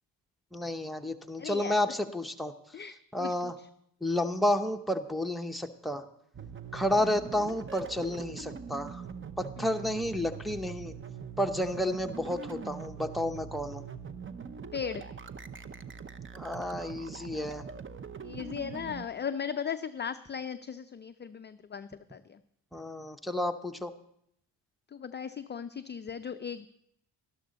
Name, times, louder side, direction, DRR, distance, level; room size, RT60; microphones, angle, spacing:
voice 1, 0.5-2.5 3.1-3.6 4.0-6.0 6.7-9.0 9.4-11.0 11.4-13.8 16.3-17.6 22.7-23.9, left 1 dB, ahead, 4 dB, 0.9 m, -31 dB
voice 2, 1.4-1.8 2.7-3.5 7.0-7.1 9.6-9.8 14.7-15.0 18.2-22.4 24.9-26.7, left 7 dB, 25° left, 10 dB, 0.4 m, -37 dB
sound 1, 6.3-19.1, right 6 dB, 30° right, 0.7 m, -43 dB
12.5 x 12.0 x 4.0 m, 0.73 s
supercardioid pair, 60°, 43 cm